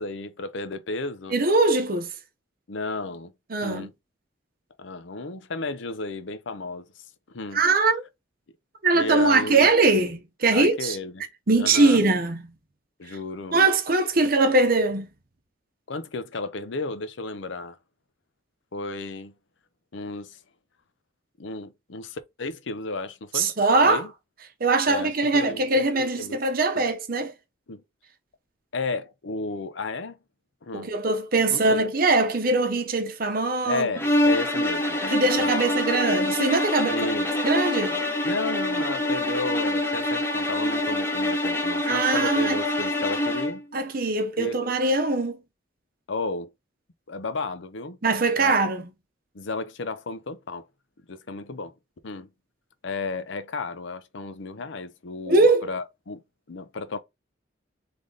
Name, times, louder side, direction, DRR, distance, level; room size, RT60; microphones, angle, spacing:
voice 1, 0.0-1.4 2.7-3.3 3.6-3.9 4.8-6.9 7.3-7.6 8.9-9.7 10.5-11.2 11.6-12.1 13.0-13.7 15.9-17.8 18.7-19.3 19.9-20.4 21.4-23.5 23.8-24.1 24.9-26.4 26.8-26.9 27.7-27.8 28.7-30.2 30.6-30.9 31.5-31.8 33.6-35.8 36.9-37.4 38.2-43.6 44.4-44.5 46.1-46.5 47.1-48.0 48.4-48.6 49.3-50.6 51.1-51.7 52.0-52.3 52.8-56.2 56.5-57.0, left 3 dB, 70° left, 0.7 m, -33 dB
voice 2, 1.3-2.1 3.5-3.9 7.5-8.0 8.8-11.0 11.5-12.4 13.1-13.2 13.5-15.1 23.3-24.0 24.6-27.3 30.7-33.9 35.0-37.1 37.4-38.0 41.9-42.6 43.7-45.4 48.0-48.9 55.3-55.7, right 3 dB, 50° right, 0.8 m, -22 dB
sound 1, 34.0-43.6, left 1 dB, 10° left, 1.1 m, -25 dB
3.8 x 3.4 x 3.9 m
head